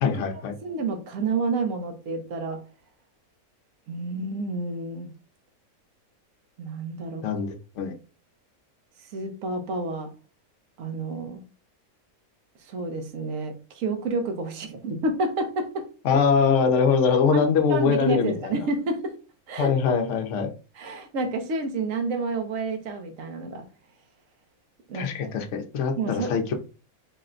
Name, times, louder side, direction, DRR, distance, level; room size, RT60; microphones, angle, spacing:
voice 1, 0.0-0.6 7.2-7.9 16.0-18.5 19.6-20.5 24.9-26.5, left 6 dB, 60° left, 4 dB, 1.0 m, -23 dB
voice 2, 0.6-2.6 3.9-5.1 6.6-7.2 9.1-10.1 10.8-11.4 12.7-15.9 17.3-19.1 19.5-19.7 20.8-23.6 24.9-25.3 26.0-26.3, right 3 dB, 65° right, 5 dB, 1.2 m, -29 dB
4.2 x 2.2 x 3.7 m, 0.34 s
omnidirectional pair, 1.5 m